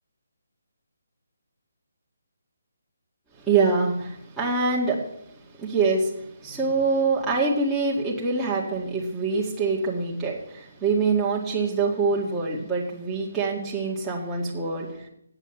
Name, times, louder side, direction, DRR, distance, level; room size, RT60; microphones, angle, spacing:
voice 1, 3.4-5.1 5.6-14.9, right 4 dB, 10° right, -6 dB, 1.9 m, -25 dB
8.3 x 8.2 x 8.9 m, 0.75 s
figure-of-eight pair, 145°, 0 cm